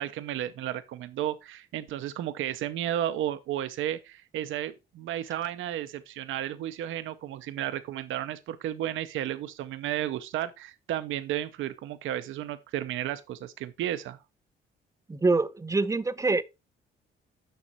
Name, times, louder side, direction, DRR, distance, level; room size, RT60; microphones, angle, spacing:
voice 1, 0.0-14.2, right 12 dB, 80° right, 0.7 m, -33 dB
voice 2, 15.1-16.4, right 3 dB, 15° right, 0.6 m, -25 dB
6.9 x 6.1 x 4.5 m
cardioid pair, 90°, 20 cm